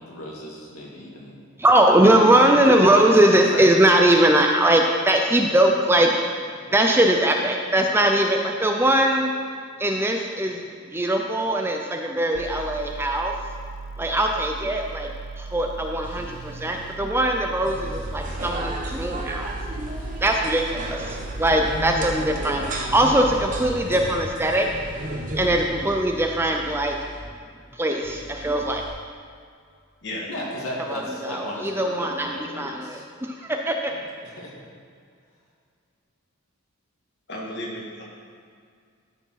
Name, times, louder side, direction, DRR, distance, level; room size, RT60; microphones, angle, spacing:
voice 1, 0.0-1.3 2.2-3.7 30.3-33.0 33.9-34.5, left 1 dB, 75° left, -3 dB, 2.1 m, -34 dB
voice 2, 1.6-6.1 6.7-9.3 9.8-10.6 10.9-13.3 14.0-15.1 15.4-19.5 20.2-24.7 25.4-27.0 27.8-28.8 30.9-33.0 33.7-33.8, right 1 dB, 10° right, 2 dB, 0.5 m, -20 dB
sound 1, 12.3-23.8, right 4 dB, 60° right, 0.5 m, -37 dB
sound 2, 16.0-16.9 17.7-20.4 21.2-22.1 22.9-23.8 24.6-27.2 28.0-28.9, equal, 5° left, 1.7 m, -39 dB
sound 3, 17.6-25.6, right 1 dB, 35° right, 1.1 m, -33 dB
voice 3, 30.0-30.4 30.7-30.8 37.3-38.0, left 1 dB, 50° left, -3 dB, 2.0 m, -34 dB
13.0 x 4.9 x 5.7 m, 2.2 s
head